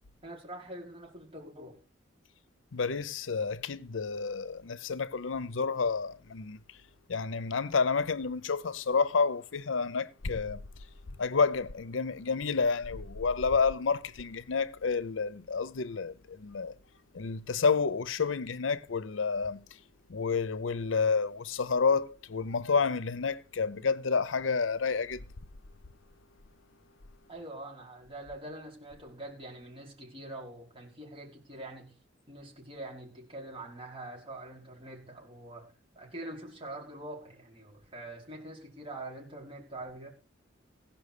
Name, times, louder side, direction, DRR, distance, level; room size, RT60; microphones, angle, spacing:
voice 1, 0.2-1.8 27.3-32.0 32.3-40.1, right 1 dB, 30° right, 5.2 m, -44 dB
voice 2, 2.7-6.6 7.1-10.7 11.2-16.8 17.1-19.6 20.1-25.2, left 5 dB, 90° left, 0.7 m, -30 dB
16.5 x 5.8 x 6.7 m
head